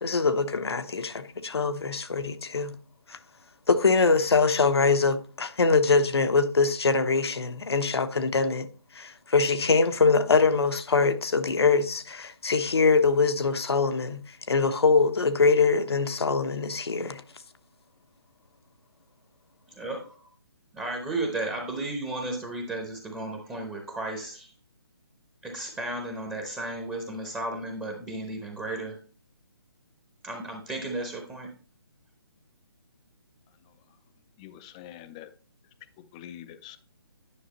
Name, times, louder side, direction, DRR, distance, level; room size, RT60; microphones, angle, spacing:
voice 1, 0.0-2.8 3.1-3.2 3.7-8.7 8.9-17.2, left 4 dB, 75° left, 1.0 m, -23 dB
voice 2, 19.8-20.2 20.7-24.5 25.4-29.0 30.2-31.5, right 2 dB, 10° right, 0.9 m, -34 dB
voice 3, 34.4-35.3 36.1-36.8, left 11 dB, 15° left, 0.4 m, -44 dB
9.8 x 6.2 x 3.0 m
hypercardioid pair, 155°, 13 cm